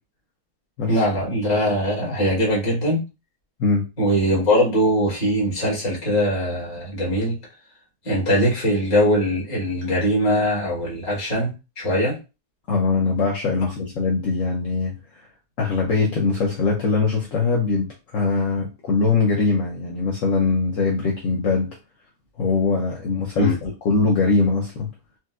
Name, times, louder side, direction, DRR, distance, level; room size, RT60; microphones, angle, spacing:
voice 1, 0.9-3.0 4.0-7.3 8.0-12.2 23.4-23.6, equal, 30° left, -5 dB, 1.3 m, -21 dB
voice 2, 12.7-14.9 15.6-17.9 18.1-21.7 22.4-24.9, left 4 dB, 60° left, -2 dB, 1.0 m, -21 dB
4.4 x 2.2 x 2.3 m, 0.29 s
omnidirectional pair, 1.7 m